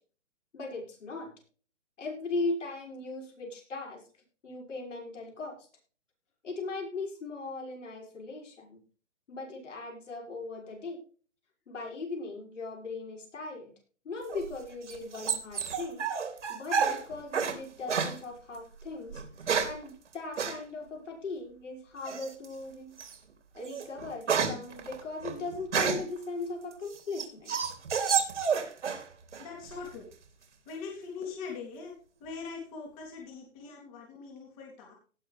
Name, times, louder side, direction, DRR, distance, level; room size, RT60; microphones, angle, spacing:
voice 1, 0.5-1.3 2.0-4.0 4.4-5.5 6.4-8.8 9.3-11.0 11.7-13.7 14.0-16.0 16.5-23.0 23.5-27.6, left 3 dB, 75° left, 1 dB, 6.1 m, -38 dB
sound 1, 14.3-17.6 17.9-18.2 19.1-19.8 20.4-20.6 22.1-22.5 23.0-23.2 23.6-26.2 26.7-29.1 29.3-29.9, right 6 dB, 75° right, 3.2 m, -30 dB
voice 2, 29.4-30.1 30.7-31.9 32.2-34.9, left 5 dB, 30° left, -1 dB, 3.5 m, -42 dB
18.0 x 6.8 x 3.4 m, 0.39 s
hypercardioid pair, 155°, 37 cm